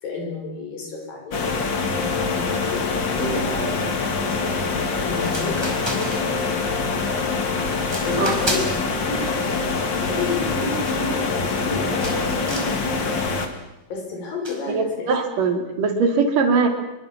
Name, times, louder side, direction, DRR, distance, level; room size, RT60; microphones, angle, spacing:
voice 1, 0.0-2.9 3.1-4.6 4.9-6.4 6.8-7.3 8.0-8.8 9.1-9.7 10.0-13.1 13.9-15.1, left 3 dB, 90° left, 2 dB, 7.2 m, -31 dB
sound 1, 1.3-13.5, left 4 dB, 35° left, 2.5 m, -25 dB
sound 2, 5.2-6.6 7.0-7.4 7.8-8.9 9.2-11.7 12.0-12.8 13.2-13.6 14.4-14.7, right 1 dB, 5° right, 4.5 m, -33 dB
voice 2, 14.7-16.7, right 4 dB, 75° right, 5 dB, 4.6 m, -21 dB
25.5 x 23.5 x 7.4 m, 0.95 s
omnidirectional pair, 3.9 m